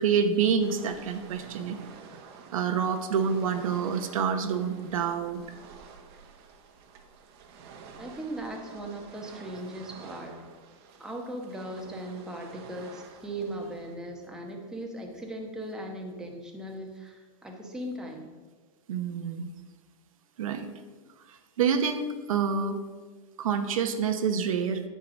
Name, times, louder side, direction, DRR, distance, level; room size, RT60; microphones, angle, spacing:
voice 1, 0.0-1.8 2.5-5.4 18.9-19.5 20.4-20.7 21.3-22.8 23.4-24.8, right 6 dB, 85° right, 8 dB, 1.0 m, -27 dB
sound 1, 0.6-14.0, right 5 dB, 50° right, 1.1 m, -49 dB
voice 2, 8.0-10.4 11.0-18.3, right 1 dB, 5° right, 0 dB, 1.0 m, -38 dB
9.1 x 4.8 x 6.3 m, 1.4 s
supercardioid pair, 155°, 17 cm